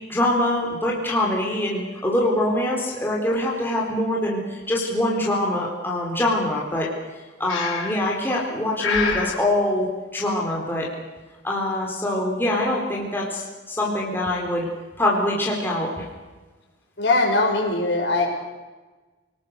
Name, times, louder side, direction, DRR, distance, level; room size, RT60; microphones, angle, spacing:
voice 1, 0.1-6.9 7.4-10.9 11.4-14.7 15.0-16.0, left 1 dB, 10° left, -3 dB, 4.2 m, -24 dB
Breathing, 7.5-8.1 8.8-9.4, left 5 dB, 80° left, 5.2 m, -26 dB
voice 2, 17.0-18.3, left 2 dB, 60° left, 1 dB, 6.2 m, -21 dB
29.5 x 19.5 x 6.8 m, 1.3 s
head